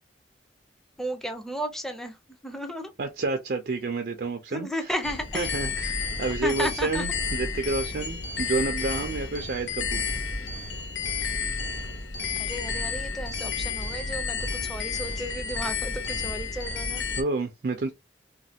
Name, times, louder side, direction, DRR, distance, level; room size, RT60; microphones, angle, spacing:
voice 1, 1.0-2.2 2.4-2.9 4.5-5.6 6.4-7.0 12.4-17.1, equal, ahead, 0.5 m, -34 dB
voice 2, 3.0-4.7 5.3-10.0 17.2-17.9, right 3 dB, 55° right, 0.4 m, -29 dB
sound 1, 5.0-17.2, left 5 dB, 90° left, 0.6 m, -31 dB
3.1 x 2.2 x 2.7 m
head